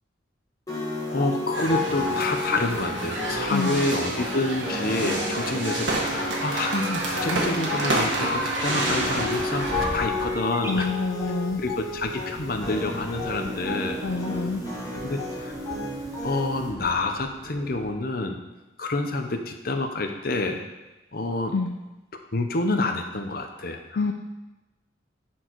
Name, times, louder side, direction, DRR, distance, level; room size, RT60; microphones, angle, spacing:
sound 1, 0.7-16.7, left 2 dB, 20° left, 1.7 m, -33 dB
voice 1, 1.1-10.9 11.6-14.0 14.9-15.5 16.2-18.4 18.8-20.6 21.1-21.5 22.3-24.1, left 2 dB, 50° left, 5 dB, 0.8 m, -28 dB
sound 2, 1.5-9.9, right 1 dB, 80° right, 1.7 m, -28 dB
voice 2, 3.5-3.8 10.7-11.6 14.0-14.6 21.5-21.8 24.0-24.1, left 4 dB, 75° left, 4 dB, 0.5 m, -27 dB
sound 3, 8.9-17.9, right 1 dB, 15° right, 0.5 m, -39 dB
10.5 x 4.6 x 4.6 m, 1.1 s
head